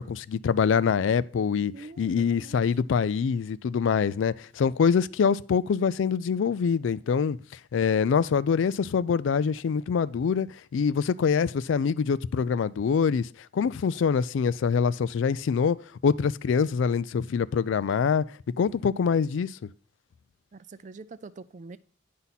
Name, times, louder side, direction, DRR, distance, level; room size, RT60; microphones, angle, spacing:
voice 1, 0.0-1.7 2.0-7.4 7.7-10.5 10.7-13.3 13.5-15.8 16.0-18.2 18.6-19.5, left 6 dB, 90° left, 0.4 m, -24 dB
voice 2, 1.7-2.6 20.5-21.8, right 3 dB, 40° right, 0.4 m, -45 dB
9.4 x 5.6 x 4.1 m
head